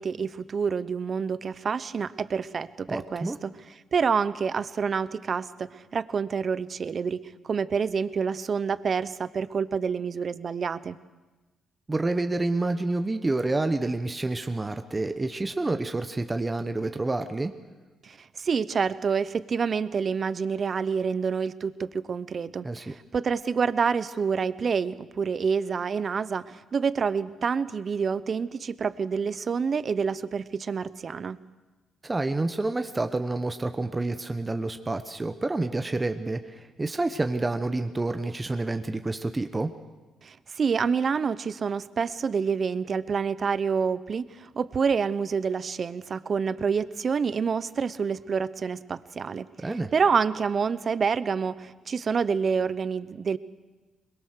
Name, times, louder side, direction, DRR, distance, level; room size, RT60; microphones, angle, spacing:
voice 1, 0.0-3.5 3.9-11.0 18.0-22.9 23.1-31.4 40.2-49.5 49.9-53.4, right 6 dB, 45° right, 16 dB, 0.8 m, -27 dB
voice 2, 2.9-3.4 11.9-17.5 22.6-22.9 32.0-39.7 49.6-49.9, right 2 dB, 20° right, 8 dB, 1.0 m, -28 dB
22.5 x 22.0 x 6.6 m, 1.2 s
cardioid pair, 90°, 0 cm